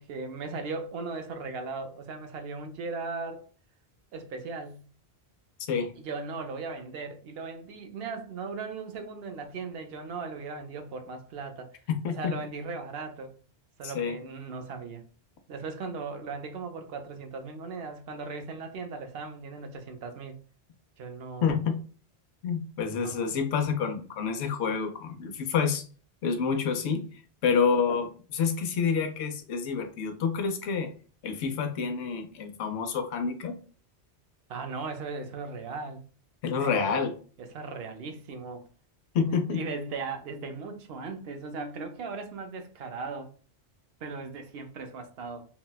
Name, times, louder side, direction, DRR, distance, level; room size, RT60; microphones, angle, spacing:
voice 1, 0.0-3.5 4.1-4.8 6.0-11.8 12.1-13.4 13.8-15.0 15.5-20.4 21.0-21.5 23.0-23.3 34.5-36.0 36.6-37.1 37.4-38.7 39.5-43.3 44.0-45.5, right 4 dB, 70° right, 0.8 m, -38 dB
voice 2, 11.9-12.3 13.8-14.2 21.4-21.8 22.4-25.8 26.2-27.1 27.4-30.9 31.2-33.6 36.4-37.1 39.1-39.6, left 6 dB, 85° left, 0.9 m, -28 dB
4.0 x 2.1 x 2.2 m
omnidirectional pair, 1.1 m